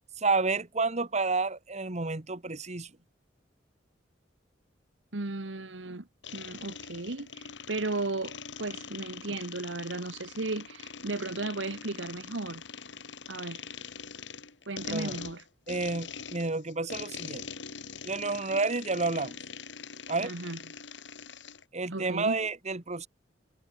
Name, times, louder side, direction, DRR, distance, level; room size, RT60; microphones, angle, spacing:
voice 1, 0.2-2.9 14.9-15.2 15.7-17.4 18.1-19.4 20.1-20.3 21.7-23.1, right 3 dB, 40° right, 1.7 m, -30 dB
voice 2, 5.1-12.6 13.3-13.7 14.7-15.4 20.2-20.6 21.9-22.4, right 2 dB, 85° right, 1.4 m, -35 dB
sound 1, 6.2-21.6, left 6 dB, 75° left, 2.8 m, -43 dB
head